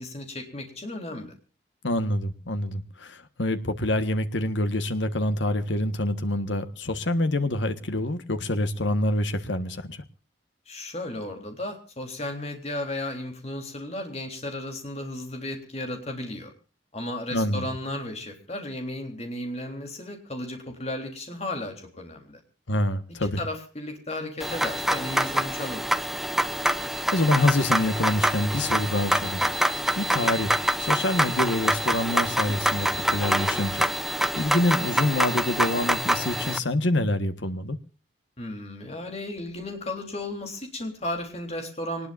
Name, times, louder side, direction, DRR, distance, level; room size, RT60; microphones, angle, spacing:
voice 1, 0.0-1.3 10.7-16.5 16.9-22.4 23.2-26.0 38.4-42.1, left 1 dB, 35° left, 4 dB, 3.7 m, -34 dB
voice 2, 1.8-10.0 17.3-17.6 22.7-23.4 26.6-37.8, left 1 dB, 75° left, 10 dB, 1.5 m, -26 dB
sound 1, 24.4-36.6, right 1 dB, ahead, 0.7 m, -26 dB
24.5 x 19.5 x 2.7 m, 0.36 s
head